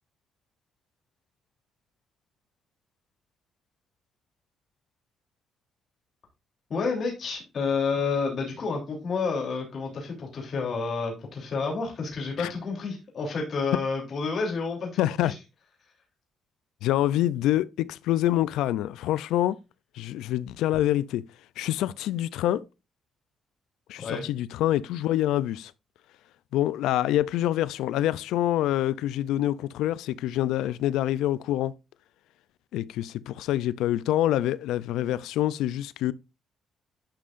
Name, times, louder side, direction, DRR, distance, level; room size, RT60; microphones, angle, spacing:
voice 1, 6.7-14.9 15.2-15.3 24.0-24.3, left 4 dB, 55° left, 3.2 m, -29 dB
voice 2, 15.0-15.3 16.8-19.6 19.9-21.2 21.6-22.7 23.9-25.7 26.5-31.7 32.7-36.1, left 13 dB, 90° left, 0.4 m, -26 dB
11.5 x 5.6 x 2.5 m
cardioid pair, 90°, 0 cm